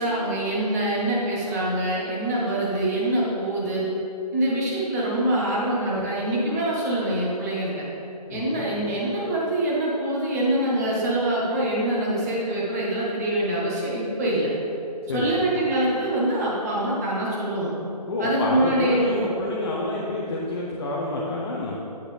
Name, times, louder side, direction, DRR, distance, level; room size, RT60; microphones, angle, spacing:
voice 1, 0.0-3.9 4.3-7.8 8.3-14.5 15.1-17.7 18.2-19.3, right 1 dB, 25° right, -5 dB, 1.3 m, -24 dB
voice 2, 8.3-8.7 15.1-15.3 18.1-21.8, left 2 dB, 40° left, -4 dB, 0.8 m, -28 dB
8.1 x 5.9 x 3.4 m, 2.7 s
figure-of-eight pair, 145°, 21 cm